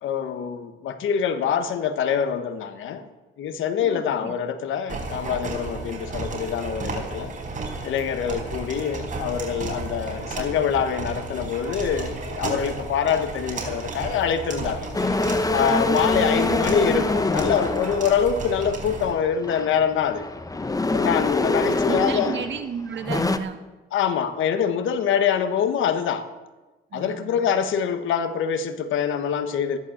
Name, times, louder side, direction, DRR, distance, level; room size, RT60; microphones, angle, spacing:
voice 1, 0.0-3.1 3.4-7.4 7.8-14.9 15.5-20.3 20.9-22.3 23.9-26.3 26.9-29.8, left 7 dB, 80° left, 10 dB, 1.3 m, -25 dB
voice 2, 3.8-4.3 16.1-17.0 21.6-23.6 26.9-27.4, right 7 dB, 65° right, 7 dB, 1.7 m, -34 dB
sound 1, 4.9-19.1, right 3 dB, 40° right, 4.1 m, -33 dB
sound 2, 14.9-18.8 19.3-22.7 23.0-23.4, left 2 dB, 20° left, 1.0 m, -25 dB
14.0 x 11.5 x 7.2 m, 1.2 s
cardioid pair, 90°, 20 cm